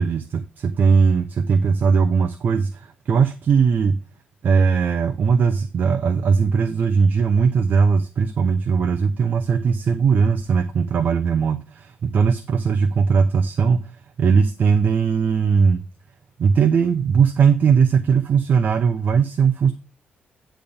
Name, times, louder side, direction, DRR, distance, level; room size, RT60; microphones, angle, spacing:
voice 1, 0.0-4.0 4.4-13.9 14.2-15.8 16.4-19.7, right 5 dB, 50° right, 8 dB, 0.7 m, -19 dB
10.0 x 3.4 x 7.0 m, 0.30 s
cardioid pair, 135°, 4 cm